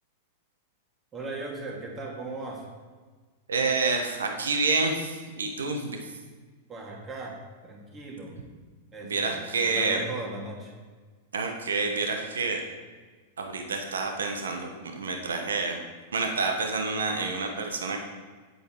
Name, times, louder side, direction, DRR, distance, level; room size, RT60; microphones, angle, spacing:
voice 1, 1.1-2.6 6.7-7.4 7.6-8.4 8.9-10.7, right 3 dB, 25° right, -1 dB, 2.5 m, -37 dB
voice 2, 3.5-6.0 9.0-10.0 11.3-12.6 13.4-15.8 16.1-18.0, right 4 dB, 75° right, 3 dB, 1.1 m, -28 dB
9.3 x 8.1 x 4.6 m, 1.4 s
figure-of-eight pair, 95°, 0 cm